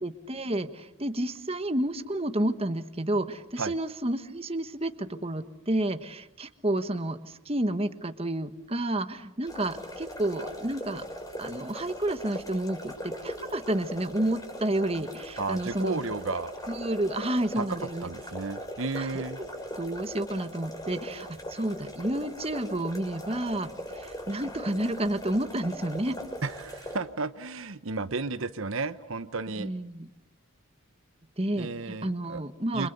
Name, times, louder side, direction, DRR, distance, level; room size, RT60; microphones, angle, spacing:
voice 1, 0.0-11.0 11.4-16.0 16.7-18.1 19.0-19.2 19.7-26.2 29.6-30.1 31.4-32.9, right 1 dB, 25° right, 9 dB, 1.3 m, -30 dB
sound 1, 9.4-27.0, equal, 15° left, 5.8 m, -40 dB
voice 2, 15.4-16.5 17.6-19.4 26.4-29.7 31.5-32.4 32.7-32.9, right 3 dB, 65° right, 12 dB, 1.0 m, -33 dB
30.0 x 26.5 x 6.8 m, 0.80 s
head